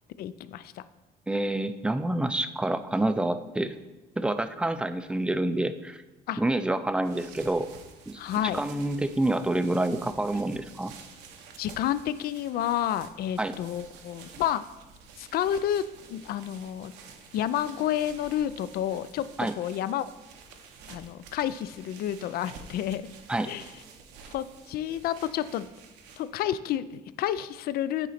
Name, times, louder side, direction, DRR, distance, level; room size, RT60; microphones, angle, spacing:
voice 1, 0.2-0.8 6.3-6.4 8.2-8.6 11.6-14.6 15.2-16.9 17.3-19.3 19.6-20.1 20.9-23.1 23.5-23.7 24.3-25.7 26.2-28.1, left 11 dB, 65° left, 15 dB, 0.4 m, -30 dB
voice 2, 1.3-3.7 4.2-6.0 6.4-7.7 8.1-8.2 8.5-10.9 13.4-13.5 19.4-19.5 23.3-23.5, right 1 dB, 5° right, 11 dB, 0.3 m, -27 dB
sound 1, 6.9-26.5, right 5 dB, 90° right, 0.9 m, -50 dB
9.1 x 4.0 x 4.2 m, 1.1 s
cardioid pair, 110°, 17 cm